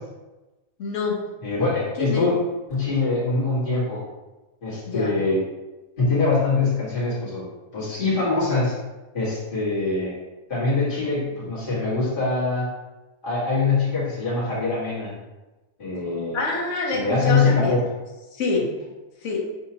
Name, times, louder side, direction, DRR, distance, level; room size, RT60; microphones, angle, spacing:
voice 1, 0.8-1.2 2.0-2.3 4.9-5.1 16.3-17.7 18.3-18.7 19.2-19.4, left 3 dB, 60° left, -2 dB, 1.2 m, -26 dB
voice 2, 1.4-2.3 2.7-4.0 4.6-5.4 6.0-7.4 7.7-8.7 9.1-10.1 10.5-12.7 13.2-15.1 15.8-16.5 16.9-17.8, left 3 dB, 35° left, -9 dB, 1.9 m, -23 dB
6.4 x 2.8 x 2.8 m, 1.1 s
omnidirectional pair, 1.5 m